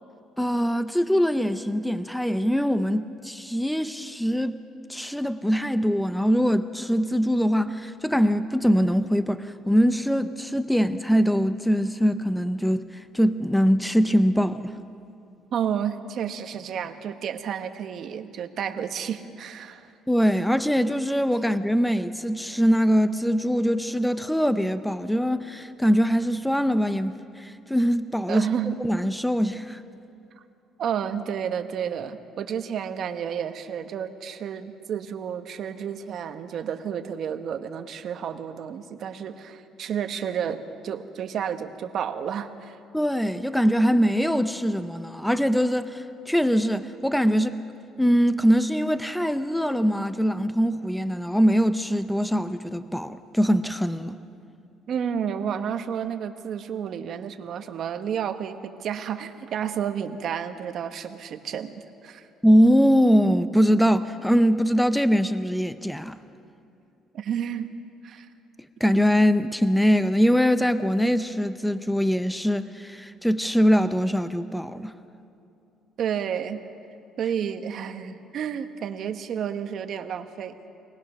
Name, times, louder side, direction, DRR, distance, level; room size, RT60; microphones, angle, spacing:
voice 1, 0.4-4.6 4.9-14.7 20.1-28.5 28.8-29.8 42.9-47.6 48.0-54.2 62.4-66.2 68.8-74.9, equal, ahead, 0.5 m, -22 dB
voice 2, 15.5-19.9 28.3-28.8 30.8-42.8 54.9-62.3 67.1-67.7 68.0-68.3 76.0-76.6 77.2-80.6, right 8 dB, 50° right, 1.1 m, -31 dB
23.5 x 19.0 x 6.1 m
cardioid pair, 145°, 0 cm